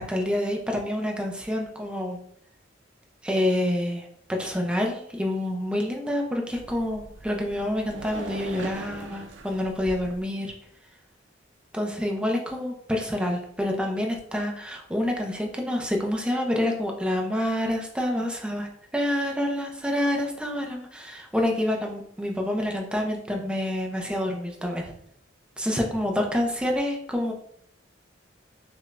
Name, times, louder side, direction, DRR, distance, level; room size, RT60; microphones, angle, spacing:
voice 1, 0.0-2.2 3.2-10.5 11.7-24.9 25.6-27.3, left 1 dB, 5° right, 1 dB, 0.4 m, -27 dB
sound 1, 6.5-10.2, right 3 dB, 70° right, 0.5 m, -41 dB
4.9 x 2.1 x 2.4 m, 0.70 s
head